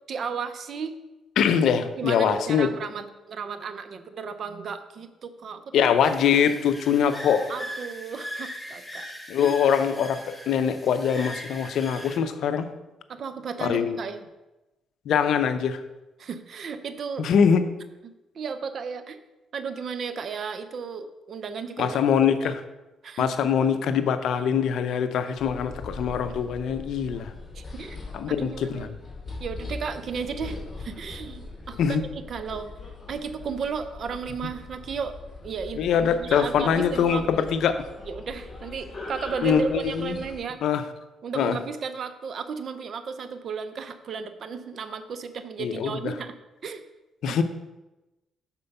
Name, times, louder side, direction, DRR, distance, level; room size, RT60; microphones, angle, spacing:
voice 1, 0.1-0.9 2.0-5.9 7.5-9.1 9.4-9.5 13.1-14.2 16.2-17.3 18.3-19.2 19.5-22.2 22.4-22.6 23.0-23.3 27.5-28.0 28.3-28.9 29.4-32.7 33.1-35.1 35.4-35.8 36.2-37.5 38.0-40.6 41.2-46.3 46.6-46.8 47.3-47.4, right 6 dB, 55° right, 10 dB, 0.6 m, -34 dB
voice 2, 1.4-2.7 5.7-7.5 9.3-12.7 13.6-14.0 15.1-15.8 17.2-17.6 21.8-22.6 23.2-27.3 28.1-29.0 31.8-32.0 35.8-37.7 39.4-40.2 40.6-40.8 41.4-41.6 45.6-46.1 47.2-47.4, left 7 dB, 75° left, 10 dB, 0.6 m, -23 dB
sound 1, 6.0-12.2, equal, 10° left, 0.9 m, -40 dB
sound 2, 25.4-40.4, left 3 dB, 30° left, 2.3 m, -41 dB
6.8 x 4.4 x 5.4 m, 1.0 s
cardioid pair, 90°, 0 cm